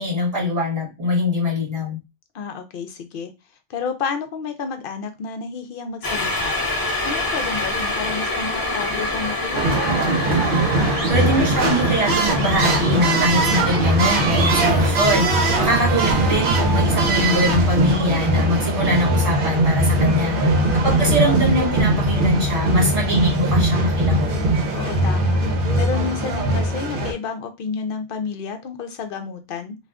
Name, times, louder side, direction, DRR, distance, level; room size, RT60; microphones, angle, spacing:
voice 1, 0.0-2.0 11.1-20.3 20.8-24.3, left 1 dB, 35° right, -3 dB, 1.4 m, -23 dB
voice 2, 2.3-3.3 3.7-6.5 7.0-9.9 20.0-20.5 24.7-25.4 25.7-29.8, left 5 dB, 65° left, 7 dB, 0.7 m, -30 dB
sound 1, 6.0-18.1 18.5-18.6, left 2 dB, 25° left, 0.5 m, -27 dB
sound 2, 9.5-27.1, right 2 dB, 55° right, 0.9 m, -20 dB
2.5 x 2.3 x 3.4 m, 0.24 s
omnidirectional pair, 1.1 m